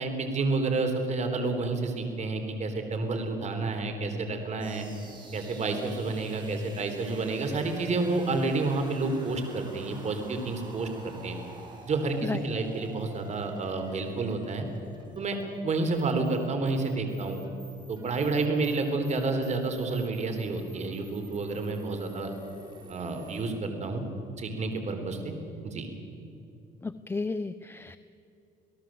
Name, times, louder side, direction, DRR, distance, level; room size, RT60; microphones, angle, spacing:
voice 1, 0.0-4.9 5.3-11.4 11.9-14.7 15.2-15.4 15.6-17.4 17.9-22.3 22.9-24.0 24.4-25.3 25.6-25.9, right 3 dB, 40° right, 6 dB, 3.8 m, -30 dB
sound 1, 4.6-23.5, right 2 dB, 25° right, 5.9 m, -50 dB
voice 2, 26.8-28.0, left 3 dB, 15° left, 11 dB, 0.6 m, -33 dB
27.5 x 17.5 x 7.8 m, 2.7 s
cardioid pair, 110°, 17 cm